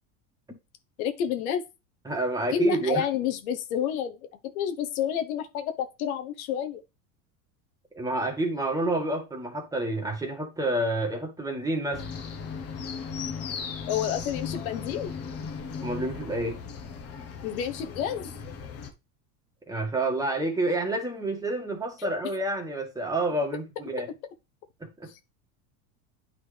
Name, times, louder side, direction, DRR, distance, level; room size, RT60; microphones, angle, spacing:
voice 1, 1.0-1.6 2.5-6.8 13.9-15.1 17.4-18.3 22.0-22.1 25.1-25.2, left 9 dB, 85° left, 1.2 m, -29 dB
voice 2, 2.0-3.0 7.9-12.1 15.8-16.6 19.7-24.1 24.8-25.1, right 2 dB, 10° right, 1.6 m, -29 dB
sound 1, 11.9-18.9, left 5 dB, 35° left, 1.2 m, -37 dB
9.4 x 3.9 x 3.3 m
supercardioid pair, 135°, 41 cm